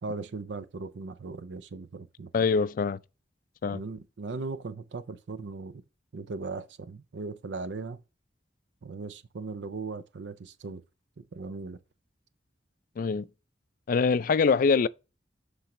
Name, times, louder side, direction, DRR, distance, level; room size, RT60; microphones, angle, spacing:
voice 1, 0.0-2.5 3.7-5.8 6.1-8.0 8.8-10.8 11.2-11.8, right 3 dB, 80° right, 0.5 m, -38 dB
voice 2, 2.3-3.0 3.6-3.8 13.0-13.3 13.9-14.9, left 5 dB, 50° left, 0.3 m, -24 dB
11.5 x 4.0 x 3.0 m
head